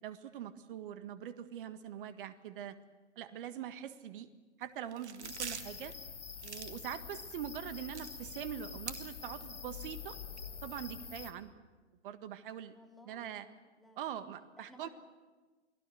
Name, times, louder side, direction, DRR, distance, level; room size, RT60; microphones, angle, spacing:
voice 1, 0.0-2.8 3.1-4.3 4.6-5.9 6.4-10.2 10.6-11.5 12.0-12.8 13.0-13.5 14.0-14.9, right 10 dB, 45° right, 11 dB, 1.7 m, -43 dB
sound 1, 4.6-4.7 4.9-5.9 6.3-7.2 7.5-7.6 8.0-9.0 9.4-9.5 10.0-10.4, right 6 dB, 70° right, 1.9 m, -44 dB
sound 2, 5.2-11.3, left 6 dB, 75° left, 2.2 m, -46 dB
voice 2, 12.7-14.1 14.5-14.9, left 1 dB, ahead, 0 dB, 3.4 m, -58 dB
29.0 x 19.5 x 6.4 m, 1.3 s
figure-of-eight pair, 115°, 35 cm